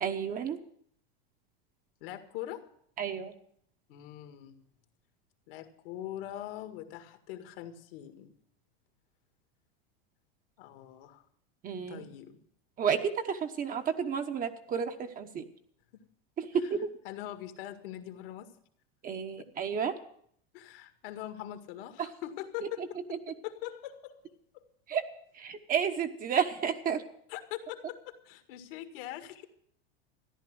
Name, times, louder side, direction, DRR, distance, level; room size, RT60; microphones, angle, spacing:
voice 1, 0.0-0.6 3.0-3.3 11.6-12.1 12.8-15.4 16.4-16.9 19.0-19.9 22.0-22.1 24.9-25.0 25.4-27.0, right 7 dB, 30° right, 7 dB, 1.1 m, -31 dB
voice 2, 2.0-2.6 3.9-4.6 5.5-8.3 10.6-11.2 11.9-12.4 15.9-16.0 16.6-16.7 17.0-18.5 19.4-19.5 20.5-23.2 23.4-24.1 24.5-24.6 27.3-29.4, left 13 dB, 70° left, 6 dB, 1.9 m, -42 dB
14.0 x 10.5 x 6.2 m, 0.66 s
supercardioid pair, 135°, 30 cm